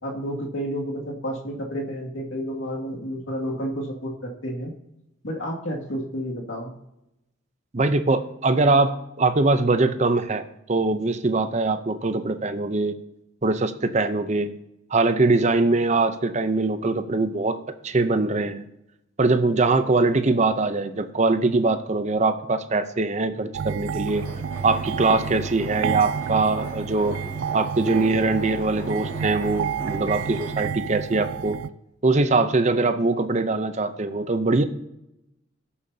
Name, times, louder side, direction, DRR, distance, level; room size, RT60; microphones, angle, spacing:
voice 1, 0.0-4.7 5.2-6.7, equal, 80° left, -2 dB, 2.2 m, -30 dB
voice 2, 7.7-13.0 13.4-14.5 14.9-17.6 17.8-18.6 19.2-24.2 24.6-27.2 27.5-31.6 32.0-34.6, right 3 dB, 35° right, 10 dB, 0.6 m, -22 dB
sound 1, 23.5-31.7, right 7 dB, 75° right, 0.4 m, -30 dB
sound 2, 24.0-30.5, equal, 15° left, 2.8 m, -40 dB
17.5 x 7.0 x 2.8 m, 0.86 s
head